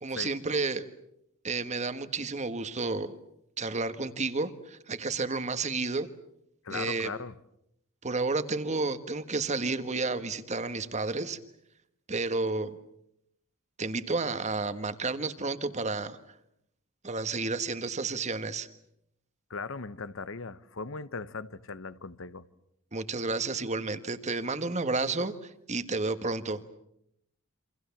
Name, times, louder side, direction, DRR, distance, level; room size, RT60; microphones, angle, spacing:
voice 1, 0.0-0.9 1.4-3.2 3.6-6.1 6.7-7.1 8.0-11.4 12.1-12.8 13.8-16.2 17.0-18.7 22.9-26.6, right 3 dB, 35° right, 1.5 m, -31 dB
voice 2, 6.6-7.3 19.5-22.4, left 4 dB, 65° left, 1.0 m, -38 dB
28.5 x 25.5 x 7.2 m
head